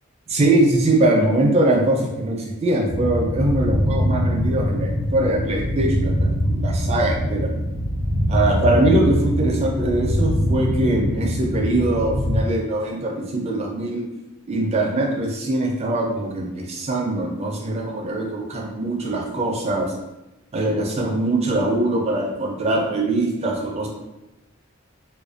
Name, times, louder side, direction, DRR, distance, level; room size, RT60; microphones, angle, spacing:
voice 1, 0.3-7.5 8.3-14.0 14.5-19.9 20.5-23.9, right 1 dB, 30° right, 0 dB, 0.4 m, -22 dB
sound 1, 2.9-12.4, equal, 50° left, 0.5 m, -23 dB
2.4 x 2.1 x 2.4 m, 0.99 s
head